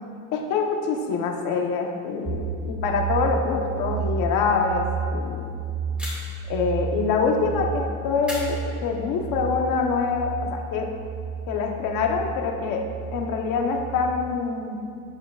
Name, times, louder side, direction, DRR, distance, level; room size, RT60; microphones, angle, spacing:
voice 1, 0.3-4.9 5.1-5.5 6.5-10.9 11.5-12.8 13.1-14.8, left 4 dB, 70° left, 2 dB, 1.2 m, -25 dB
sound 1, 2.2-14.1, right 4 dB, 20° right, 0.5 m, -32 dB
sound 2, 6.0-6.5 8.2-9.2, left 1 dB, 5° right, 2.1 m, -37 dB
12.5 x 8.9 x 2.5 m, 2.4 s
cardioid pair, 170°, 35 cm